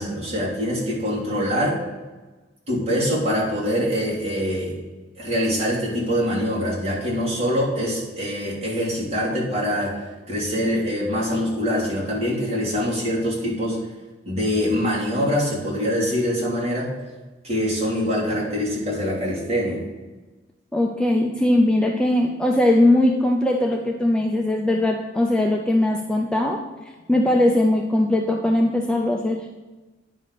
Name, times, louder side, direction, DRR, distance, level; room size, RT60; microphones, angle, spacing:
voice 1, 0.0-1.8 2.7-4.7 5.2-10.0 10.3-13.8 14.2-16.9 17.4-19.8, equal, 35° right, -5 dB, 3.0 m, -24 dB
voice 2, 20.7-26.6 27.1-29.4, left 1 dB, 5° left, 1 dB, 0.5 m, -20 dB
9.7 x 4.1 x 6.4 m, 1.2 s
head